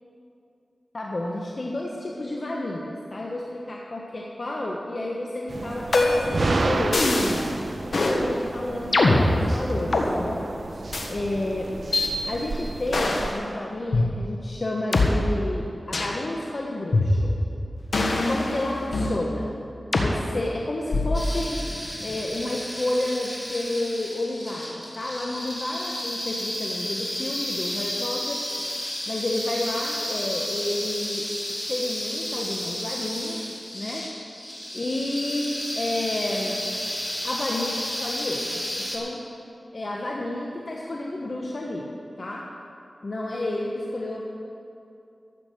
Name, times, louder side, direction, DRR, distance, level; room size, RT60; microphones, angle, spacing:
voice 1, 0.9-7.3 8.0-10.5 11.0-11.7 12.3-17.4 18.3-19.5 20.0-21.6 22.0-28.4 29.1-31.2 31.7-33.4 33.7-34.1 34.7-36.7 37.2-39.2 39.7-41.9 42.2-42.5 43.0-44.2, left 1 dB, 55° left, -2 dB, 1.2 m, -30 dB
sound 1, 5.5-13.3, right 2 dB, 65° right, 0.8 m, -31 dB
sound 2, 5.9-6.4 6.9-7.5 7.9-8.2 8.9-10.1 10.9-11.1 11.9-12.1 12.9-13.3 13.9-14.0 14.9-15.1 15.9-16.2 16.9-17.5 17.9-19.2 19.9-20.1 20.9-21.3, left 2 dB, 75° left, 1.4 m, -22 dB
sound 3, 21.1-39.0, left 1 dB, 20° left, 2.7 m, -32 dB
13.0 x 8.4 x 6.8 m, 2.6 s
cardioid pair, 55°, 0 cm